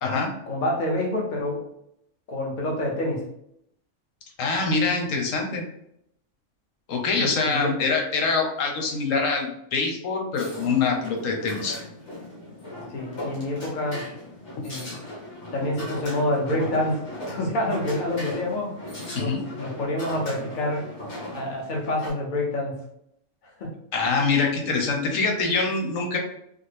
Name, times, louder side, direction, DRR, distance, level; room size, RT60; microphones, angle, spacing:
voice 1, 0.0-1.7 2.3-3.2 7.1-8.0 12.9-14.1 14.6-14.9 15.5-18.7 19.1-20.9 21.3-22.8 23.6-23.7, left 1 dB, 45° left, -1 dB, 0.8 m, -27 dB
voice 2, 4.4-5.6 6.9-11.8 19.1-19.4 23.9-26.2, left 4 dB, 90° left, 1 dB, 1.2 m, -24 dB
sound 1, 10.3-22.1, left 1 dB, 65° left, 1.4 m, -38 dB
3.7 x 2.0 x 3.2 m, 0.75 s
omnidirectional pair, 1.3 m